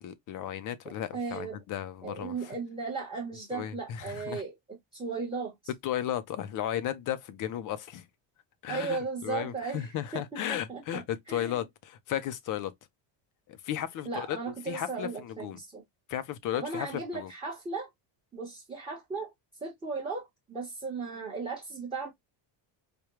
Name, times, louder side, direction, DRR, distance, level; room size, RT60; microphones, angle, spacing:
voice 1, 0.0-2.3 3.5-4.4 5.8-8.0 8.6-12.7 13.5-15.6 16.1-16.9 17.1-17.3, left 11 dB, 45° left, 0.5 m, -35 dB
voice 2, 0.8-1.6 2.0-5.5 8.7-11.6 14.0-15.8 16.5-17.9 18.3-19.3 19.6-22.1, right 4 dB, 10° right, 0.9 m, -36 dB
4.9 x 2.2 x 2.9 m
cardioid pair, 175°, 48 cm